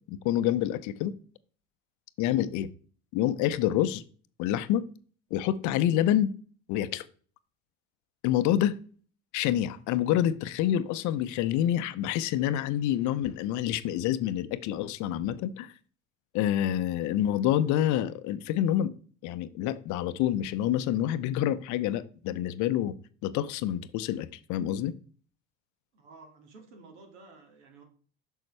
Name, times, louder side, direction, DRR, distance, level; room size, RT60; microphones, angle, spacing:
voice 1, 0.1-1.1 2.2-2.7 3.1-4.0 4.4-4.9 5.3-6.3 6.7-7.0 8.2-8.8 9.3-15.7 16.3-18.9 19.2-22.9 23.2-24.9, left 11 dB, 55° left, 0.6 m, -27 dB
voice 2, 25.9-27.8, right 3 dB, 85° right, 2.3 m, -52 dB
6.5 x 6.3 x 3.2 m
hypercardioid pair, 85°, 34 cm